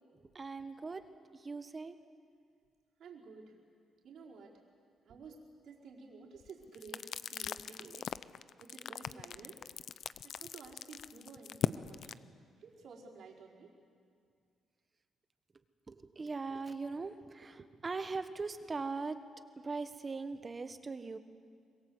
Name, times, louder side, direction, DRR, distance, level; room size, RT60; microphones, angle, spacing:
voice 1, 0.2-1.1 1.3-2.0 15.9-19.2 19.6-21.2, right 4 dB, 30° right, 10 dB, 1.3 m, -40 dB
voice 2, 3.0-3.5 4.0-4.6 5.0-8.2 8.6-9.6 10.2-12.1 12.6-13.7, right 4 dB, 65° right, -3 dB, 4.6 m, -52 dB
sound 1, 6.4-12.1, left 9 dB, 65° left, 0.6 m, -39 dB
26.0 x 22.0 x 7.9 m, 2.2 s
cardioid pair, 90°, 0 cm